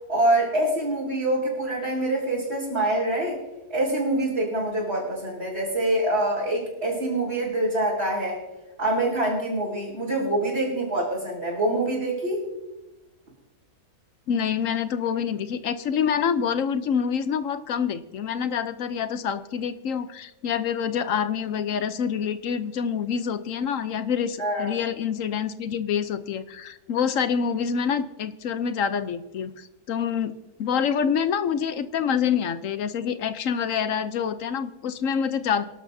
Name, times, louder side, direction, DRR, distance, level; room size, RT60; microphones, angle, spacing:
voice 1, 0.1-3.4 3.7-8.4 8.8-12.5 24.4-24.7, right 1 dB, 45° right, -8 dB, 5.2 m, -25 dB
voice 2, 14.3-30.3 30.6-35.6, left 7 dB, 65° left, 12 dB, 1.0 m, -26 dB
26.0 x 12.0 x 2.7 m, 1.0 s
omnidirectional pair, 1.6 m